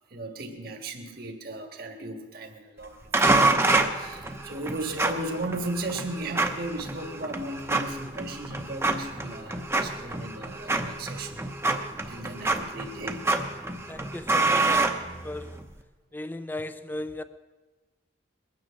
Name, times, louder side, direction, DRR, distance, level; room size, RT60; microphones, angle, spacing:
voice 1, 0.1-13.3, right 2 dB, 50° right, 3 dB, 1.6 m, -36 dB
sound 1, 3.1-15.6, right 2 dB, 15° right, 0.8 m, -27 dB
voice 2, 13.9-15.5 16.1-17.2, left 1 dB, 10° left, 12 dB, 0.5 m, -36 dB
21.5 x 9.4 x 6.3 m, 1.3 s
head